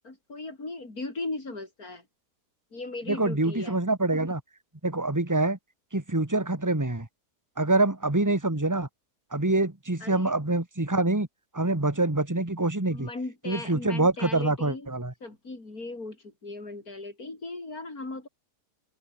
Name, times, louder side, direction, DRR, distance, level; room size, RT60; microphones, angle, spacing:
voice 1, 0.0-2.0 2.7-3.8 10.0-10.3 12.9-14.9 15.2-18.3, left 2 dB, 60° left, 5.6 m, -38 dB
voice 2, 3.1-4.4 4.8-5.6 5.9-7.1 7.6-8.9 9.3-11.3 11.5-13.1 13.5-15.1, right 2 dB, 10° right, 2.5 m, -25 dB
open air
omnidirectional pair, 1.7 m